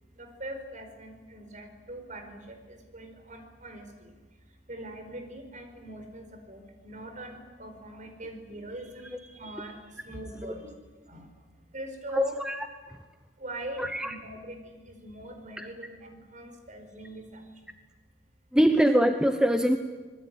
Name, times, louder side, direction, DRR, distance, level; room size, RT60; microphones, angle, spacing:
voice 1, 0.1-4.1 4.7-10.7 11.1-11.3 11.7-12.4 13.4-17.4, right 1 dB, 45° right, 6 dB, 5.0 m, -42 dB
voice 2, 12.1-13.0 13.8-14.1 15.6-15.7 18.5-19.8, equal, 5° right, 7 dB, 1.0 m, -24 dB
26.0 x 21.0 x 9.4 m, 1.3 s
head